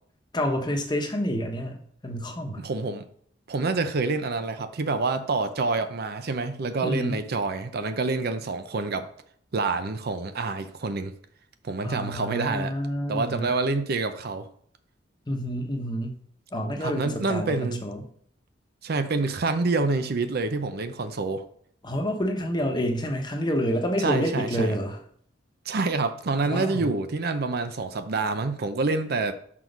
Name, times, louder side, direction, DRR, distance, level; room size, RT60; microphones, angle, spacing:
voice 1, 0.3-2.6 6.8-7.2 11.8-13.5 15.3-16.2 16.5-18.0 21.8-25.0 26.4-26.9, equal, 25° left, 1.1 m, -28 dB
voice 2, 2.6-3.0 3.5-9.1 9.5-11.1 11.6-12.8 13.1-14.5 16.5-17.8 18.8-21.4 24.0-24.7 25.7-29.3, right 3 dB, 55° right, 0.6 m, -27 dB
6.1 x 4.6 x 5.2 m
head